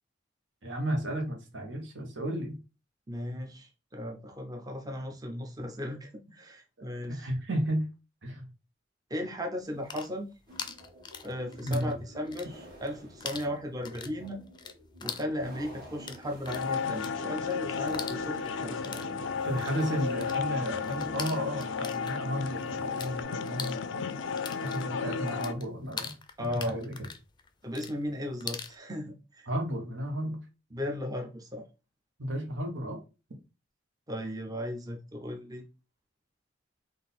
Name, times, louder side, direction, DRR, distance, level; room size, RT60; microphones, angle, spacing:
voice 1, 0.6-2.6 7.1-7.9 8.2-8.5 11.6-11.9 19.4-24.1 24.6-26.2 26.5-26.9 29.5-30.4 32.2-33.0, equal, 85° right, 1.1 m, -33 dB
voice 2, 3.1-7.3 9.1-10.3 11.2-14.4 15.0-19.2 26.4-26.8 27.6-29.5 30.7-31.6 34.1-35.7, left 1 dB, 20° right, 0.6 m, -36 dB
sound 1, 9.7-11.9 12.2-12.9 13.2-23.1 23.4-28.7, left 6 dB, 25° left, 0.4 m, -42 dB
sound 2, 10.5-23.2, equal, 55° right, 1.5 m, -50 dB
sound 3, 16.5-25.5, left 5 dB, 85° left, 0.4 m, -33 dB
3.8 x 2.6 x 4.1 m
head